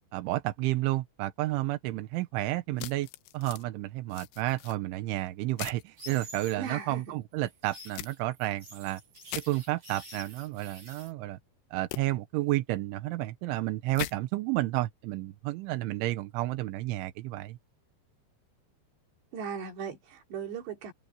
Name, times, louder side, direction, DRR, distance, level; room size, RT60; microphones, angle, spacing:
voice 1, 0.1-3.1 3.3-9.0 9.3-11.4 11.7-17.6, right 17 dB, 85° right, 3.4 m, -31 dB
sound 1, 2.8-3.6 4.1-4.8 5.6-5.8 7.9-8.1 9.3-9.5 11.9-12.0 13.9-14.1, left 17 dB, 75° left, 2.7 m, -39 dB
sound 2, 6.0-6.6 7.5-11.1, equal, 40° right, 8.6 m, -48 dB
voice 2, 6.6-7.2 19.3-20.9, right 7 dB, 65° right, 5.4 m, -37 dB
omnidirectional pair, 5.5 m